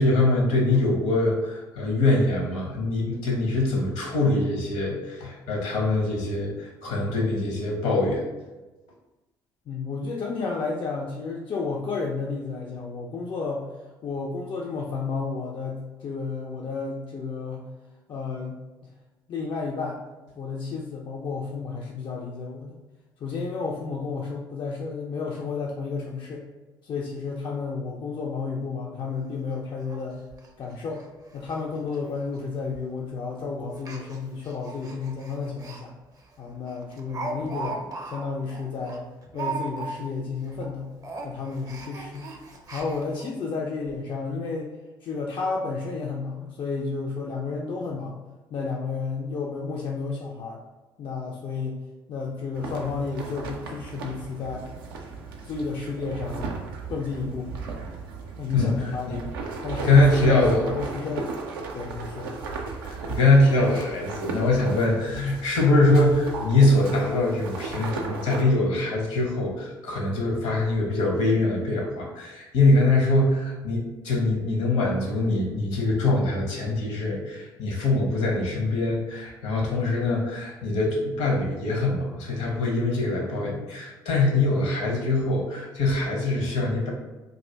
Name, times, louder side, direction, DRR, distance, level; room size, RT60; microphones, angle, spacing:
voice 1, 0.0-8.2 58.5-59.2 59.8-60.6 62.8-86.9, left 2 dB, 65° left, -2 dB, 0.9 m, -23 dB
voice 2, 9.7-13.7 14.0-17.7 18.1-18.9 19.3-20.0 20.4-22.8 23.2-26.5 26.8-30.3 30.6-31.0 31.3-35.9 36.4-39.1 39.3-40.9 41.2-42.3 42.7-44.7 45.0-48.2 48.5-50.6 51.0-54.6 55.4-56.5 56.9-57.5 58.4-59.2 59.6-61.3 61.7-62.3, left 4 dB, 40° left, -1 dB, 0.4 m, -32 dB
Speech, 29.0-29.1 29.4-29.5 29.9-30.0 30.3-30.5 30.9-31.1 31.3-31.6 31.9-32.0 32.7-33.0 33.7-35.8 36.2-36.3 36.7-40.2 40.5-40.7 41.0-43.3 43.9-44.0 44.2-44.3, right 3 dB, 30° right, 0.5 m, -37 dB
sound 1, 52.5-68.4, right 4 dB, 80° right, 0.4 m, -36 dB
2.6 x 2.4 x 3.3 m, 1.1 s
figure-of-eight pair, 50°, 12 cm